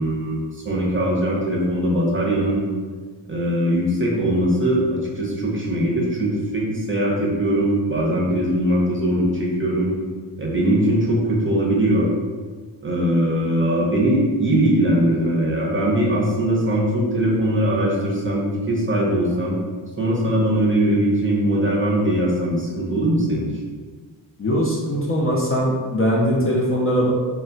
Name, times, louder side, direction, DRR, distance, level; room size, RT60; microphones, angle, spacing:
voice 1, 0.0-2.6 3.3-10.0 10.4-12.1 12.8-19.6 20.0-23.5, right 1 dB, 25° right, -3 dB, 0.7 m, -21 dB
voice 2, 24.4-27.1, equal, 30° left, -4 dB, 0.5 m, -21 dB
2.3 x 2.1 x 3.8 m, 1.5 s
cardioid pair, 85°, 46 cm